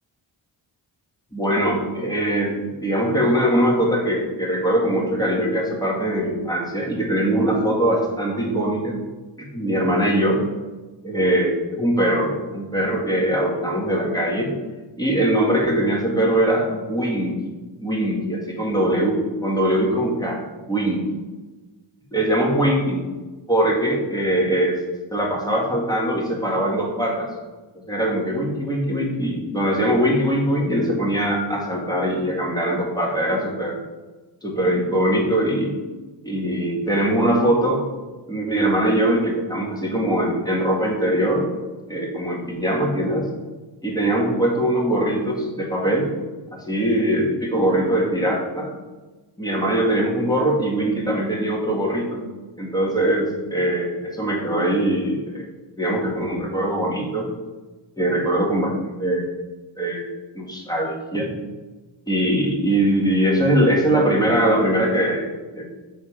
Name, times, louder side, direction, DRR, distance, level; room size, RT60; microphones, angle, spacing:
voice 1, 1.3-9.0 9.4-10.4 11.0-14.5 15.0-17.3 17.8-20.4 20.7-21.0 22.1-23.0 23.5-24.8 25.1-27.3 27.9-33.8 34.4-35.8 36.2-37.8 38.3-41.5 41.9-43.3 43.8-46.1 46.5-48.7 49.4-52.2 52.6-55.5 55.8-57.2 58.0-59.2 59.8-60.1 60.3-61.3 62.1-65.6, right 1 dB, 10° left, -3 dB, 2.0 m, -21 dB
7.0 x 4.0 x 5.1 m, 1.2 s
cardioid pair, 70°, 46 cm